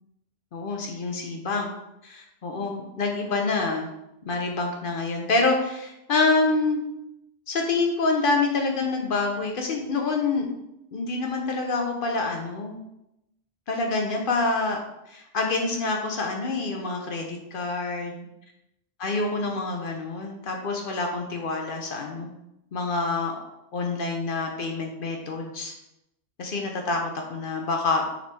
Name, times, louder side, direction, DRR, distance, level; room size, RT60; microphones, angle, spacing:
voice 1, 0.5-1.7 2.0-3.9 4.3-6.8 7.5-10.5 10.9-12.8 13.7-14.8 15.1-18.3 19.0-22.3 22.7-23.4 23.7-25.7 26.4-28.0, left 3 dB, 50° left, 2 dB, 0.7 m, -27 dB
4.8 x 3.2 x 3.4 m, 0.85 s
omnidirectional pair, 1.3 m